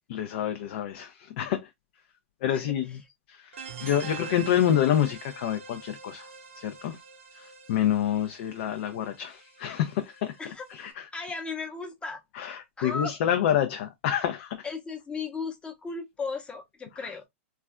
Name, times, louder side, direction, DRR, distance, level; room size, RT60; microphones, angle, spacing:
voice 1, 0.1-1.7 2.4-3.0 3.3-6.3 6.6-7.0 7.3-10.4 10.7-11.0 12.4-14.7 17.0-17.1, left 10 dB, 60° left, 0.5 m, -28 dB
voice 2, 2.5-3.0 10.4-10.7 11.1-12.2 12.8-13.2 14.6-17.2, left 4 dB, 15° left, 0.8 m, -36 dB
sound 1, 3.5-10.9, right 5 dB, 85° right, 0.8 m, -45 dB
3.2 x 2.4 x 2.2 m
hypercardioid pair, 120°, 7 cm